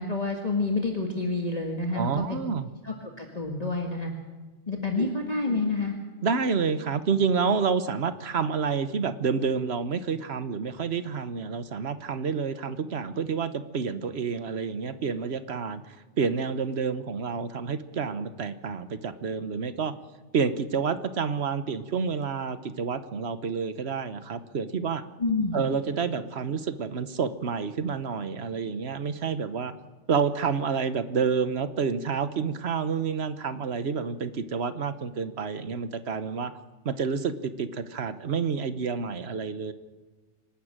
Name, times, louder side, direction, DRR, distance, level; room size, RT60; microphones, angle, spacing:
voice 1, 0.0-2.4 2.8-4.1 4.7-5.9 25.2-25.6, left 3 dB, 35° left, 1 dB, 1.9 m, -28 dB
voice 2, 1.9-2.7 5.0-5.1 6.2-19.9 20.3-25.0 25.5-29.7 30.1-36.5 36.8-39.7, right 5 dB, 60° right, 12 dB, 1.3 m, -29 dB
26.0 x 12.0 x 8.9 m, 1.3 s
omnidirectional pair, 1.2 m